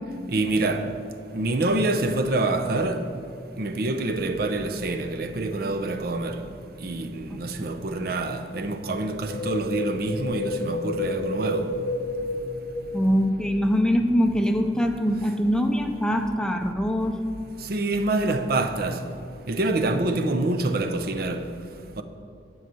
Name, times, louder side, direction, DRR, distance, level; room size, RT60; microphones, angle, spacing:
voice 1, 0.3-0.9 1.3-3.0 3.6-6.4 6.8-11.7 17.6-19.0 19.5-21.4 22.0-22.1, right 2 dB, 55° right, 0.6 m, -26 dB
Wind, 9.1-13.4 13.6-13.7, left 2 dB, 70° left, 0.7 m, -31 dB
voice 2, 12.9-17.2, equal, 5° left, 0.5 m, -23 dB
10.0 x 5.6 x 7.7 m
head